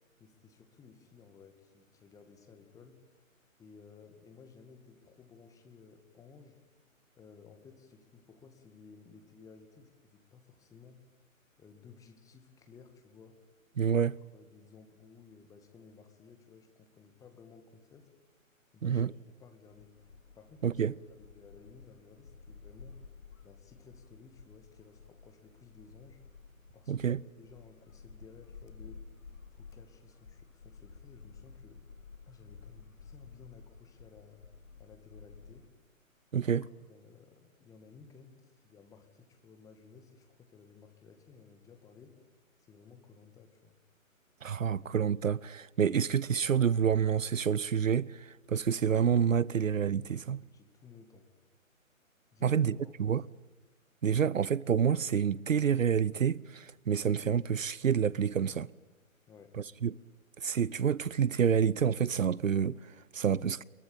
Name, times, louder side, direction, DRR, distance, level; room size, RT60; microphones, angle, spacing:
voice 1, 0.2-3.2 3.6-6.6 7.2-11.0 11.6-13.4 13.9-14.0 14.3-18.1 18.7-20.0 20.3-20.8 21.1-23.0 23.4-26.2 26.7-29.0 29.5-31.9 32.3-34.4 34.8-35.7 36.4-42.2 42.6-43.8 50.2-51.3 52.3-53.2 59.3-59.6, left 5 dB, 10° left, 2.0 m, -56 dB
voice 2, 13.8-14.2 18.8-19.1 20.6-20.9 26.9-27.2 36.3-36.6 44.4-50.4 52.4-53.2 54.0-58.7 59.8-59.9 60.4-63.6, right 7 dB, 70° right, 0.7 m, -28 dB
sound 1, 19.7-35.7, left 5 dB, 70° left, 2.8 m, -53 dB
22.5 x 22.5 x 8.7 m
figure-of-eight pair, 140°, 41 cm